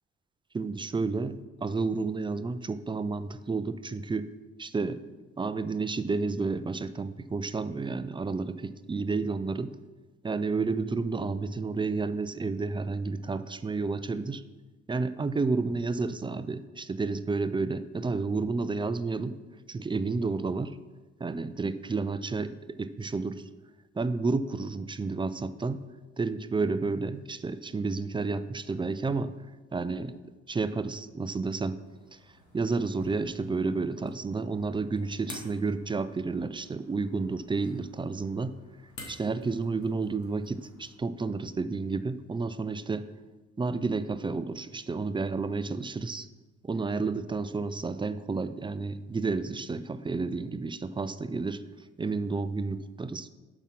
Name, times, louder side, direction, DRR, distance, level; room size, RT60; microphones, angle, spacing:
voice 1, 0.5-4.3 4.6-5.0 5.4-9.7 10.2-14.4 14.9-19.4 19.7-20.8 21.2-23.4 23.9-25.8 26.2-29.3 29.7-30.2 30.5-31.8 32.5-38.6 39.1-43.1 43.6-46.3 46.6-51.6 52.0-53.3, right 4 dB, 15° right, 13 dB, 0.4 m, -31 dB
sound 1, 31.8-41.0, left 2 dB, 75° left, 2.2 m, -51 dB
7.1 x 5.9 x 5.8 m, 1.2 s
cardioid pair, 90°, 30 cm